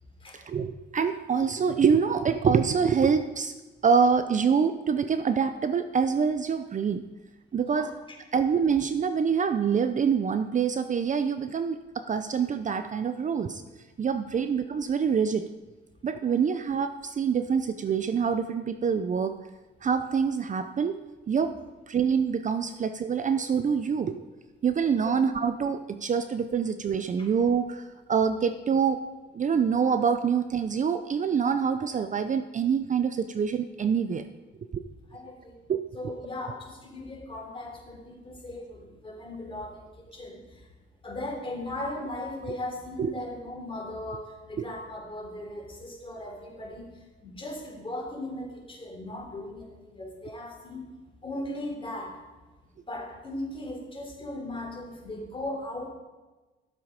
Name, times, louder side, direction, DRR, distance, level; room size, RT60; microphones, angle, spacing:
voice 1, 0.3-3.5 3.8-7.0 7.5-7.9 8.3-13.6 14.0-15.4 16.0-19.3 19.8-21.0 21.3-21.5 21.9-24.3 24.6-27.8 28.1-29.0 29.3-34.2 34.7-34.8 35.7-35.8 43.0-43.1 44.6-44.7, right 6 dB, 40° right, 9 dB, 0.6 m, -25 dB
voice 2, 35.1-35.6 35.9-40.5 41.0-46.9 47.2-50.9 51.2-52.1 52.9-55.9, left 1 dB, 25° left, -1 dB, 3.6 m, -38 dB
12.5 x 7.3 x 5.1 m, 1.2 s
cardioid pair, 90°, 20 cm